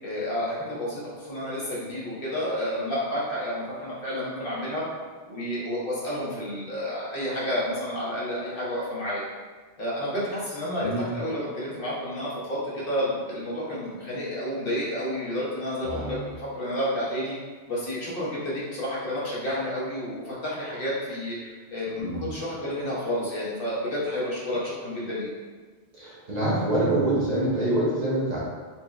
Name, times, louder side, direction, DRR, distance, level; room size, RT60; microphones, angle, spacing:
voice 1, 0.0-4.8 5.3-9.2 9.8-17.4 17.7-25.3, equal, 55° left, -8 dB, 1.2 m, -30 dB
voice 2, 10.8-11.1 15.8-16.3 22.0-22.3 25.9-28.4, right 1 dB, 45° right, -7 dB, 0.7 m, -26 dB
4.3 x 2.9 x 2.3 m, 1.4 s
omnidirectional pair, 1.1 m